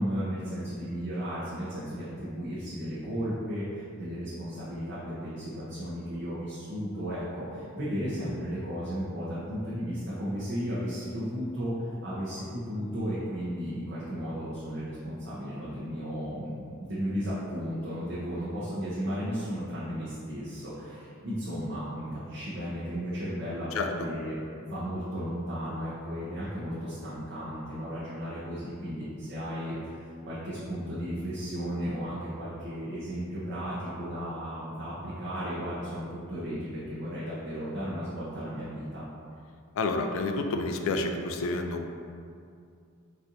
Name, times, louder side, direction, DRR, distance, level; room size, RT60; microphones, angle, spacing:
voice 1, 0.0-39.0, equal, 60° right, -10 dB, 0.7 m, -34 dB
voice 2, 39.8-41.9, left 3 dB, 70° left, 5 dB, 0.3 m, -29 dB
4.1 x 2.5 x 2.7 m, 2.4 s
head